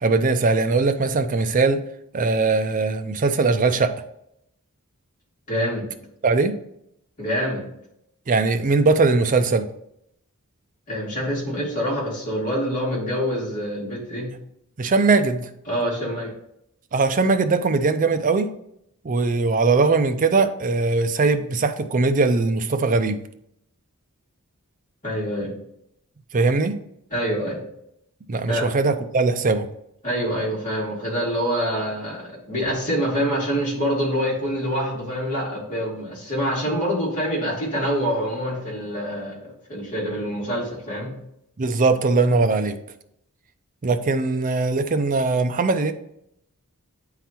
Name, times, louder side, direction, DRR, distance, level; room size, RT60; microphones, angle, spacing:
voice 1, 0.0-1.8 2.1-3.9 6.2-6.6 8.3-9.7 14.8-15.5 16.9-18.5 19.0-23.2 26.3-26.8 28.3-29.7 36.7-36.8 41.6-42.8 43.8-45.9, right 3 dB, 35° right, 8 dB, 0.5 m, -20 dB
voice 2, 5.5-5.8 7.2-7.6 10.9-14.3 15.7-16.3 25.0-25.5 27.1-27.6 28.5-28.7 30.0-32.2 32.5-41.1, equal, 35° left, -5 dB, 2.4 m, -26 dB
9.1 x 3.9 x 2.9 m, 0.77 s
head